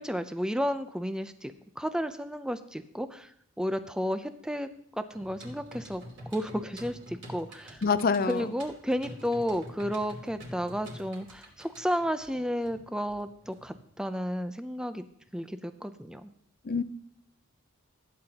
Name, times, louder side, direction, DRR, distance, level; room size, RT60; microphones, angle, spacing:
voice 1, 0.0-3.3 3.6-7.8 8.3-15.0 15.3-16.3, equal, 5° right, 10 dB, 0.5 m, -32 dB
sound 1, 5.1-13.9, equal, 60° right, 3.5 m, -47 dB
voice 2, 7.8-8.5 16.6-16.8, left 5 dB, 45° left, 14 dB, 0.5 m, -26 dB
15.5 x 9.6 x 2.9 m, 0.70 s
head